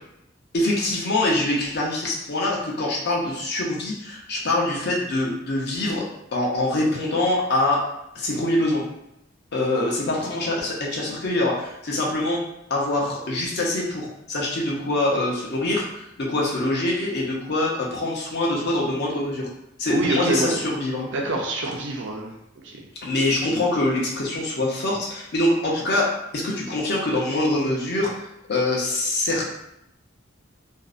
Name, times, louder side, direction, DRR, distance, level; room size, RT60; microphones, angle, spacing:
voice 1, 0.5-6.1 6.3-7.8 8.1-8.8 9.5-12.4 12.7-19.5 19.8-21.1 23.0-28.1 28.5-29.5, left 1 dB, 55° left, -3 dB, 0.6 m, -24 dB
voice 2, 19.9-20.7 21.1-22.3 22.6-22.8, right 2 dB, 70° right, 0 dB, 0.5 m, -26 dB
2.6 x 2.0 x 2.4 m, 0.82 s
head